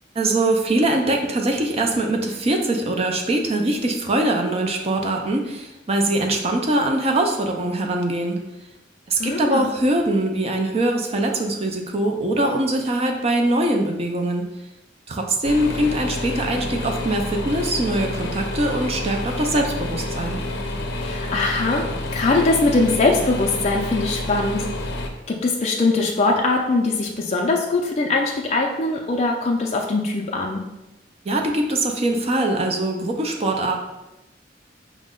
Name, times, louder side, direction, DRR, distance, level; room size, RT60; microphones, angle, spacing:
voice 1, 0.2-8.4 9.1-14.4 15.1-20.4 31.3-33.8, right 1 dB, 35° right, 3 dB, 0.5 m, -22 dB
voice 2, 9.2-9.7 21.0-21.8 22.1-24.7 25.3-30.6, left 3 dB, 35° left, -1 dB, 0.4 m, -21 dB
sound 1, 15.4-25.1, left 1 dB, 80° left, 0.6 m, -29 dB
4.8 x 2.1 x 3.6 m, 0.96 s
head